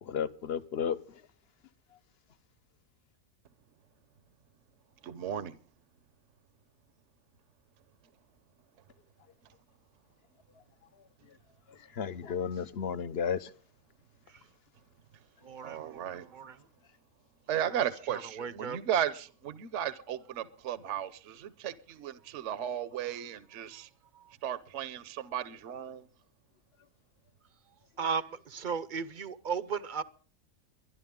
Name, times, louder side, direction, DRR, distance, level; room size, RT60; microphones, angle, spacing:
voice 1, 0.0-1.2 11.3-11.4 11.7-13.5, left 7 dB, 50° left, 1.0 m, -34 dB
voice 2, 5.0-5.6 15.6-16.3 17.5-23.9 24.4-26.1, right 10 dB, 60° right, 1.1 m, -35 dB
voice 3, 15.4-16.6 18.1-18.8 28.0-30.0, right 6 dB, 45° right, 0.7 m, -36 dB
23.5 x 11.0 x 3.7 m
omnidirectional pair, 1.4 m